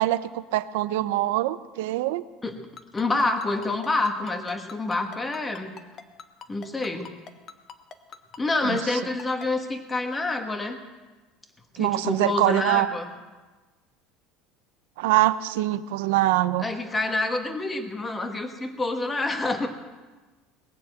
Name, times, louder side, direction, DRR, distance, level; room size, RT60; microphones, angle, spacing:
voice 1, 0.0-2.2 8.7-8.8 11.8-12.9 15.0-16.6, right 15 dB, 85° right, 14 dB, 0.6 m, -23 dB
Ringtone, 2.8-9.5, left 6 dB, 35° left, 0.9 m, -42 dB
voice 2, 2.9-5.8 6.5-7.1 8.4-10.8 11.8-13.1 16.6-19.7, left 2 dB, 15° left, 6 dB, 1.4 m, -27 dB
20.0 x 6.9 x 7.9 m, 1.2 s
cardioid pair, 140°, 0 cm